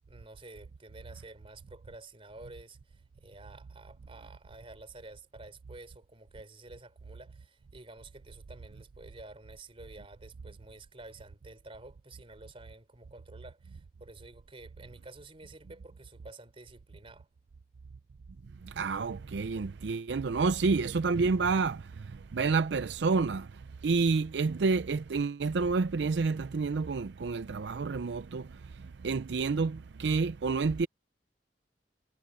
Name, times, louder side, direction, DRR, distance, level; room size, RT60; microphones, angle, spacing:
voice 1, 0.1-17.3, right 2 dB, 35° right, 3.7 m, -51 dB
voice 2, 18.6-28.5 29.0-30.9, right 4 dB, 80° right, 0.5 m, -29 dB
head